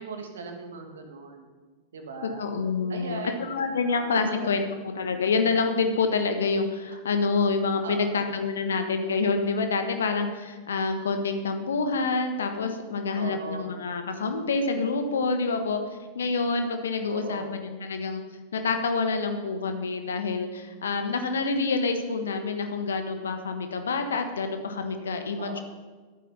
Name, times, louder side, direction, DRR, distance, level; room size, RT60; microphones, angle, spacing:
voice 1, 0.0-1.5 1.9-2.4 2.9-3.4 3.9-4.5 6.9-7.0 7.8-8.2 13.1-13.8 17.1-17.7 25.4-25.6, right 4 dB, 65° right, 4 dB, 1.7 m, -38 dB
voice 2, 2.2-4.6 5.0-15.8 16.1-18.2 18.5-25.6, left 4 dB, 65° left, 6 dB, 1.3 m, -27 dB
12.0 x 8.8 x 5.5 m, 1.4 s
figure-of-eight pair, 90°, 0 cm